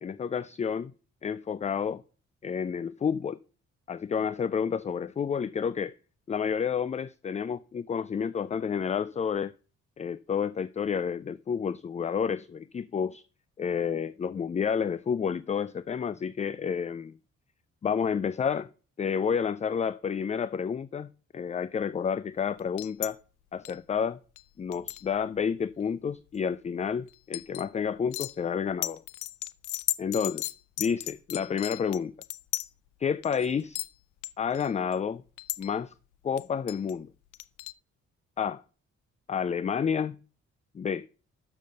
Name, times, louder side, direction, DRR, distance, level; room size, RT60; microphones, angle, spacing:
voice 1, 0.0-0.9 1.2-2.0 2.4-3.4 3.9-6.0 6.3-9.5 10.0-13.2 13.6-17.1 17.8-18.7 19.0-21.1 21.3-23.2 23.5-24.2 24.6-29.0 30.0-30.5 30.8-32.1 33.0-33.9 34.4-35.2 35.6-35.9 36.2-37.1 38.4-38.6 39.3-40.2 40.7-41.1, left 7 dB, 25° left, 0.3 m, -30 dB
sound 1, 22.6-23.1 23.7-23.8 24.4-24.5 24.7-25.4 27.1-27.7 28.1-28.4 28.8-32.7 33.2-33.5 33.8-33.9 34.2-35.0 35.4-35.7 36.4-36.9 37.3-37.7, left 15 dB, 80° left, 0.5 m, -35 dB
6.6 x 5.3 x 6.5 m
supercardioid pair, 55°, 30 cm